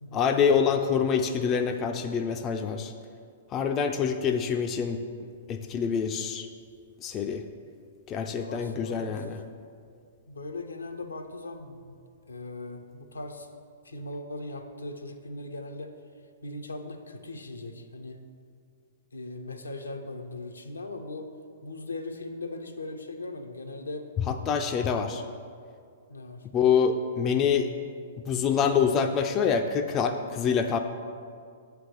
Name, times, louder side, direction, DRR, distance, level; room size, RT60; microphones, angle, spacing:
voice 1, 0.1-2.9 3.5-5.0 5.5-6.5 7.0-7.4 8.1-9.4 24.3-25.2 26.5-27.7 28.3-30.8, left 6 dB, 25° left, 6 dB, 0.3 m, -26 dB
voice 2, 8.3-9.5 10.3-12.0 12.3-13.5 13.8-15.9 16.4-18.2 19.1-21.3 21.6-24.1 26.1-26.4, left 2 dB, 80° left, 5 dB, 0.6 m, -39 dB
7.4 x 3.4 x 6.4 m, 2.2 s
figure-of-eight pair, 110°, 0 cm